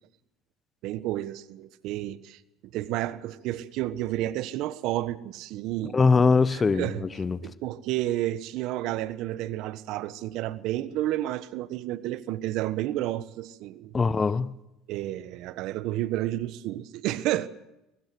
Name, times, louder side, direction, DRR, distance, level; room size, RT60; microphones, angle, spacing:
voice 1, 0.8-2.4 2.7-7.1 7.4-13.9 14.9-17.5, right 14 dB, 65° right, 1.3 m, -31 dB
voice 2, 5.9-7.4 13.9-14.5, left 4 dB, 25° left, 1.1 m, -22 dB
23.0 x 20.0 x 7.8 m
hypercardioid pair, 80°, 0 cm